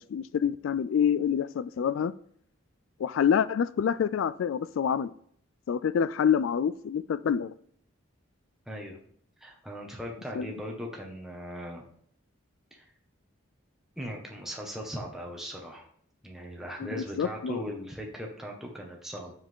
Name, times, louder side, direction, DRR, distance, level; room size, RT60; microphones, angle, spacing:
voice 1, 0.0-2.1 3.0-5.1 5.7-7.5 10.4-10.5 16.8-17.6, left 7 dB, 70° left, 16 dB, 0.3 m, -27 dB
voice 2, 8.7-9.0 9.4-11.8 12.7-12.9 14.0-15.9 16.2-19.3, equal, ahead, -1 dB, 1.5 m, -39 dB
7.4 x 7.2 x 3.7 m, 0.63 s
head